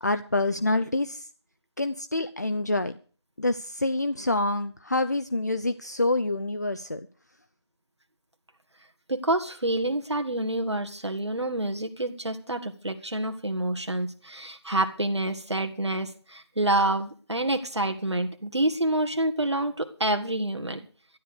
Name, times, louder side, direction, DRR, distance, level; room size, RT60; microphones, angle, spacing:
voice 1, 0.0-1.3 1.8-2.9 3.4-7.0, left 2 dB, 40° left, 9 dB, 0.6 m, -27 dB
voice 2, 9.1-20.9, right 1 dB, 80° right, 4 dB, 1.8 m, -28 dB
12.5 x 10.5 x 6.6 m, 0.42 s
figure-of-eight pair, 170°, 14 cm